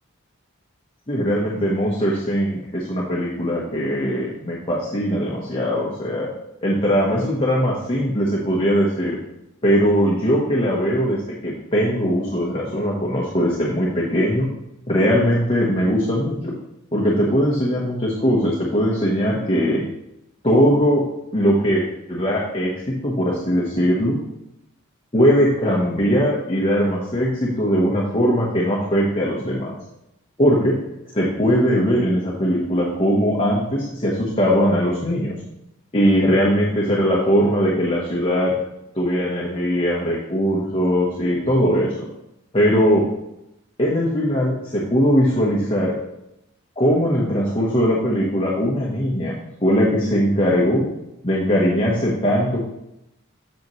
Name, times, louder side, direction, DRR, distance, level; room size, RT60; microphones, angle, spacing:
voice 1, 1.1-6.3 6.6-9.2 9.6-14.5 14.9-16.5 16.9-19.8 20.4-21.1 21.3-24.2 25.1-29.7 30.4-30.7 31.1-35.4 35.9-38.5 38.9-42.0 42.5-43.0 43.8-45.9 46.8-49.3 49.6-50.8 51.2-52.6, equal, 25° left, -4 dB, 1.2 m, -20 dB
8.2 x 6.5 x 3.1 m, 0.87 s
head